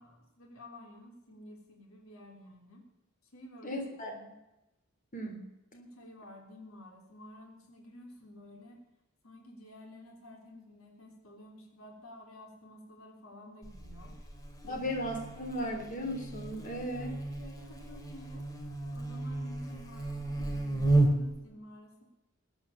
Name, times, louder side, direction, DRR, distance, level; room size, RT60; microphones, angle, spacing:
voice 1, 0.0-2.8 3.3-4.4 5.7-8.8 9.2-14.1 14.6-14.8 17.4-18.5 18.9-22.0, left 1 dB, 80° left, 1 dB, 3.5 m, -52 dB
voice 2, 3.6-4.1 5.1-5.5 14.6-17.2, equal, 40° left, 2 dB, 3.4 m, -36 dB
Buzz, 13.6-21.4, right 2 dB, 20° left, 2.4 m, -33 dB
21.5 x 8.8 x 6.9 m, 0.96 s
head